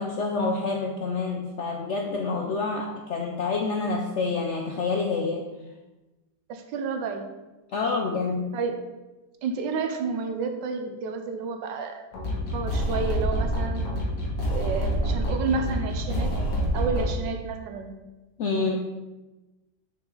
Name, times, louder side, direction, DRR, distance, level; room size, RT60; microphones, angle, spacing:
voice 1, 0.0-5.5 7.7-8.5 18.4-18.8, left 4 dB, 70° left, 2 dB, 0.6 m, -27 dB
voice 2, 6.5-7.3 7.8-8.0 8.5-8.9 9.4-12.0 12.3-13.9 14.5-16.3 16.7-18.0 18.5-18.8, right 4 dB, 85° right, 6 dB, 1.5 m, -31 dB
sound 1, 12.1-17.1, equal, 85° left, 2.1 m, -27 dB
6.2 x 6.1 x 3.8 m, 1.1 s
omnidirectional pair, 1.9 m